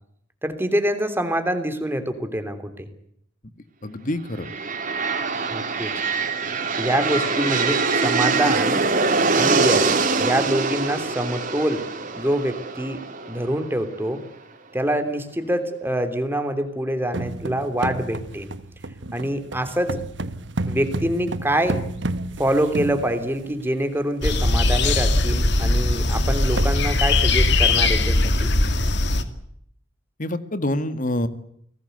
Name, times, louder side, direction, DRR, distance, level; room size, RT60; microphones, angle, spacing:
voice 1, 0.4-2.9 5.5-5.9 6.8-8.8 9.4-9.9 10.2-11.9 12.2-13.0 13.3-14.2 14.7-18.5 19.1-20.0 20.7-21.9 22.4-28.5, right 1 dB, 10° right, 8 dB, 3.2 m, -25 dB
voice 2, 3.8-4.5 30.2-31.3, left 1 dB, 45° left, 11 dB, 2.0 m, -26 dB
sound 1, 4.3-14.1, right 4 dB, 45° right, 3.7 m, -23 dB
sound 2, 17.1-23.6 24.3-24.4 24.7-24.9 25.3-25.4 26.0-26.1 26.4-26.7, right 2 dB, 65° right, 1.3 m, -31 dB
sound 3, 24.2-29.2, left 2 dB, 60° left, 2.3 m, -20 dB
29.5 x 20.0 x 8.0 m, 0.71 s
head